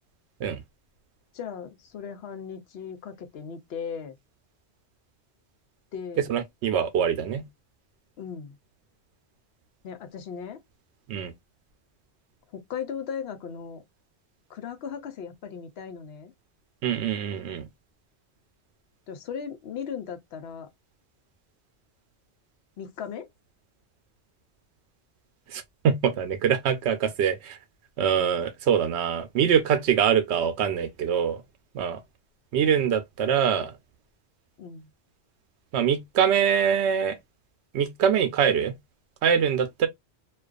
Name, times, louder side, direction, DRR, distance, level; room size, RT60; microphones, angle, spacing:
voice 1, 1.3-4.2 5.9-6.3 8.2-8.6 9.8-10.6 12.5-13.8 14.5-16.3 19.1-20.7 22.8-23.3 34.6-34.9, left 7 dB, 75° left, 0.8 m, -37 dB
voice 2, 6.3-7.5 11.1-11.3 16.8-17.7 25.5-27.6 28.0-31.4 31.7-32.0 32.5-33.8 35.7-37.2 37.7-38.7 39.2-39.9, right 8 dB, 85° right, 0.9 m, -24 dB
2.4 x 2.3 x 2.3 m
omnidirectional pair, 1.1 m